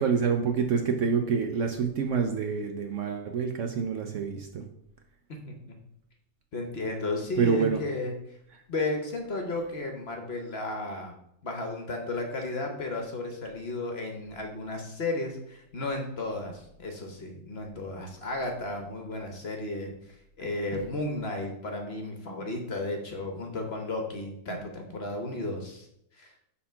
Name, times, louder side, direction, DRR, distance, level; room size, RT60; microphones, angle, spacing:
voice 1, 0.0-4.6 7.4-7.8, right 6 dB, 65° right, 4 dB, 0.8 m, -27 dB
voice 2, 6.5-8.1 8.7-11.1 11.4-19.9 20.4-25.9 26.1-26.3, left 2 dB, 45° left, 3 dB, 1.0 m, -33 dB
5.7 x 4.2 x 5.6 m, 0.75 s
omnidirectional pair, 1.7 m